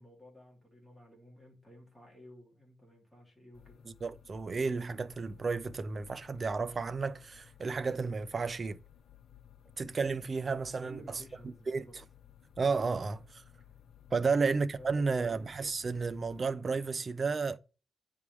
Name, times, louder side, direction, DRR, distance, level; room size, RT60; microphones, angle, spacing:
voice 1, 0.0-3.8 10.8-11.9 14.8-15.3, left 1 dB, 5° left, 2.7 m, -54 dB
sound 1, 3.5-16.5, left 9 dB, 70° left, 0.7 m, -58 dB
voice 2, 3.9-8.8 9.8-11.2 11.7-11.9 12.6-13.4 14.1-17.6, right 4 dB, 30° right, 0.4 m, -32 dB
9.6 x 3.6 x 4.6 m
wide cardioid pair, 170°, 0 cm